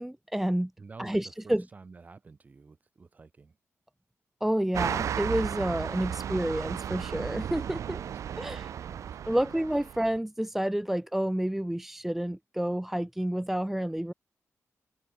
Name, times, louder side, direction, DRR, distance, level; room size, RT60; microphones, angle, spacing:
voice 1, 0.0-0.7 1.0-1.7 4.4-8.0 8.4-8.7 9.3-14.1, right 1 dB, 5° right, 0.6 m, -29 dB
voice 2, 0.8-3.6 5.9-6.2 7.8-9.4, right 4 dB, 30° right, 3.9 m, -51 dB
sound 1, 4.7-10.2, right 9 dB, 75° right, 0.7 m, -34 dB
wide cardioid pair, 170°, 5 cm